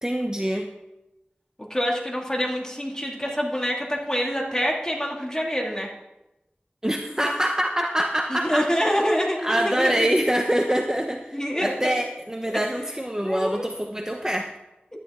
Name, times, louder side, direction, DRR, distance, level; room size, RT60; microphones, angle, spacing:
voice 1, 0.0-0.7 6.8-8.7 9.4-14.5, equal, 15° right, 3 dB, 0.8 m, -25 dB
voice 2, 1.7-5.9 8.3-10.1 11.3-11.9 12.5-12.6 13.2-13.7, equal, 15° left, -1 dB, 2.2 m, -26 dB
11.5 x 9.9 x 3.6 m, 0.95 s
wide cardioid pair, 40°, 4 cm